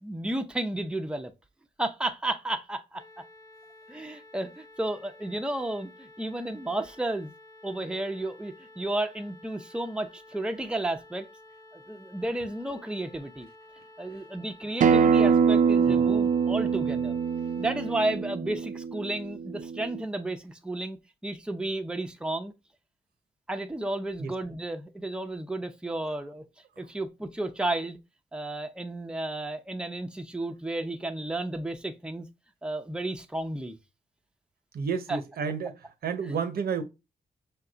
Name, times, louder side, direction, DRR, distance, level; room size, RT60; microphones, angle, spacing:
voice 1, 0.0-1.3 1.8-3.0 3.9-7.3 7.6-11.3 11.9-13.5 14.0-17.2 17.6-21.0 21.2-22.5 23.5-26.4 26.8-28.0 28.3-32.3 32.6-33.8 35.1-35.2 36.3-36.4, right 1 dB, 5° right, 0.7 m, -32 dB
sound 1, 3.0-18.1, left 1 dB, 20° left, 0.9 m, -52 dB
Acoustic guitar, 14.8-20.0, right 6 dB, 55° right, 0.5 m, -24 dB
voice 2, 34.7-36.8, right 6 dB, 80° right, 0.8 m, -31 dB
5.7 x 2.3 x 3.9 m
cardioid pair, 60°, 16 cm